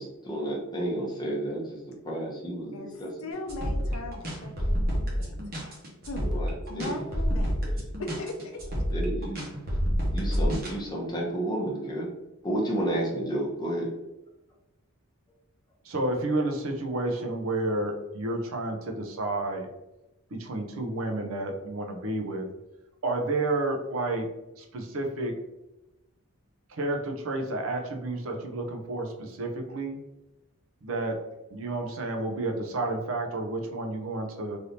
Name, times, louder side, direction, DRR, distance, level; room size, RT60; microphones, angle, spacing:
voice 1, 0.0-3.1 6.2-7.0 7.6-7.7 8.9-9.4 10.1-12.1 12.4-13.9, right 1 dB, 20° left, -3 dB, 0.7 m, -31 dB
voice 2, 3.2-5.8 6.1-6.3 6.7-7.5 8.0-8.9, left 2 dB, 75° left, 3 dB, 0.6 m, -38 dB
sound 1, 3.5-10.7, equal, 45° right, 0.9 m, -28 dB
voice 3, 15.9-19.7 20.3-22.5 23.0-24.3 24.6-25.3 26.7-30.0 30.8-31.2 31.5-34.6, right 2 dB, 70° right, 3 dB, 0.6 m, -30 dB
3.3 x 2.7 x 2.7 m, 0.96 s
head